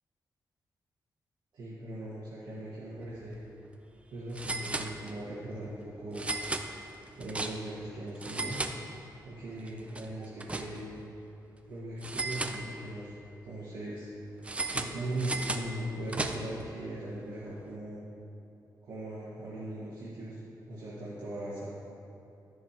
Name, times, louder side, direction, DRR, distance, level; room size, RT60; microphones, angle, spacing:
voice 1, 1.5-3.4 4.1-6.3 7.2-8.6 9.2-11.0 11.7-13.2 13.4-14.1 14.7-18.0 18.8-20.3 20.7-21.7, right 1 dB, 70° right, -9 dB, 1.5 m, -39 dB
sound 1, 3.2-3.4 3.6-3.7 4.3-5.4 6.1-7.8 8.1-9.3 9.7-11.0 12.0-13.1 14.4-16.7, right 2 dB, 15° right, 0.4 m, -36 dB
12.5 x 6.5 x 2.9 m, 2.8 s
wide cardioid pair, 125°, 8 cm